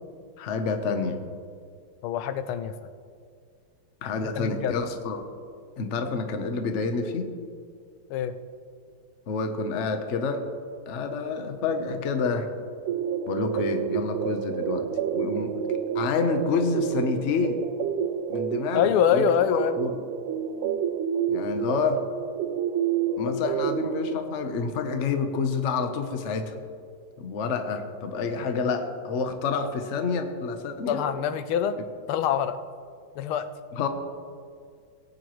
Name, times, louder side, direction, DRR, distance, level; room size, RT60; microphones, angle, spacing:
voice 1, 0.4-1.2 4.0-5.2 5.8-7.3 9.3-10.4 10.9-12.5 13.3-14.9 15.1-15.5 15.9-17.6 18.3-19.2 19.8-19.9 21.3-22.0 23.2-26.5 27.2-31.0 33.7-33.9, left 4 dB, 50° left, 6 dB, 0.9 m, -28 dB
voice 2, 2.0-2.7 4.3-4.8 8.1-8.3 18.7-19.8 30.9-31.8 32.1-32.6 33.2-33.5, left 9 dB, 85° left, 11 dB, 1.5 m, -24 dB
sound 1, 12.9-24.1, right 8 dB, 90° right, 1.5 m, -29 dB
18.5 x 9.2 x 3.1 m, 2.1 s
omnidirectional pair, 2.3 m